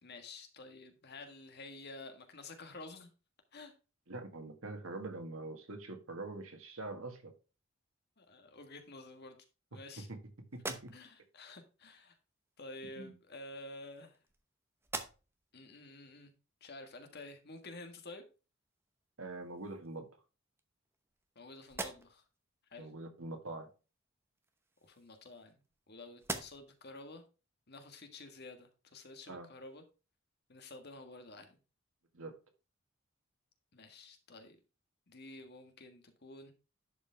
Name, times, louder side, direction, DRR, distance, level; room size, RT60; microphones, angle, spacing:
voice 1, 0.0-3.1 3.5-3.7 8.2-9.4 9.7-10.1 10.9-12.2 12.6-14.2 15.5-16.3 16.6-18.2 21.3-22.2 22.7-22.9 24.8-25.6 25.9-27.2 27.7-29.8 30.5-31.6 33.7-34.6 35.1-36.5, left 2 dB, 50° left, 1.5 m, -50 dB
voice 2, 4.1-7.3 10.0-10.2 10.5-10.9 13.0-13.1 19.2-20.1 22.8-23.7 29.3-29.5 32.1-32.4, right 2 dB, 80° right, 1.7 m, -44 dB
sound 1, 10.5-11.4 12.5-12.6 13.6-14.5 14.8-15.5 16.0-16.1 18.8-18.9 19.3-20.0 20.6-21.3 21.6-22.4 24.4-25.8 26.2-26.9, right 2 dB, 10° right, 0.9 m, -45 dB
11.0 x 5.2 x 3.3 m
head